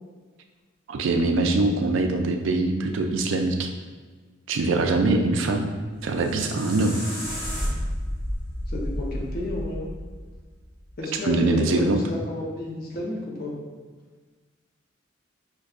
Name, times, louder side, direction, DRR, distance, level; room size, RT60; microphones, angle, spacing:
voice 1, 0.9-3.7 4.5-5.7 6.0-7.0 11.2-12.0, right 2 dB, 75° right, 4 dB, 0.4 m, -23 dB
sound 1, 5.9-11.0, equal, 15° left, 0.9 m, -32 dB
voice 2, 8.7-9.9 11.0-13.5, left 2 dB, 45° left, -3 dB, 0.7 m, -32 dB
5.2 x 2.2 x 2.4 m, 1.4 s
head